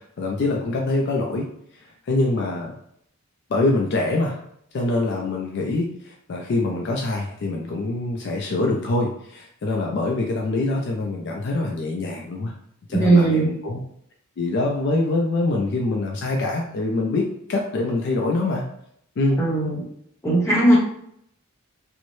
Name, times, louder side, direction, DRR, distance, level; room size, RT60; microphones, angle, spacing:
voice 1, 0.2-1.5 2.1-2.7 3.5-4.4 4.7-12.5 12.9-13.8 14.4-18.6 19.2-19.4, left 2 dB, 50° left, 0 dB, 0.3 m, -24 dB
voice 2, 13.0-13.5 19.4-19.8 20.2-20.8, right 2 dB, 15° left, -6 dB, 0.8 m, -17 dB
2.6 x 2.0 x 3.0 m, 0.71 s
head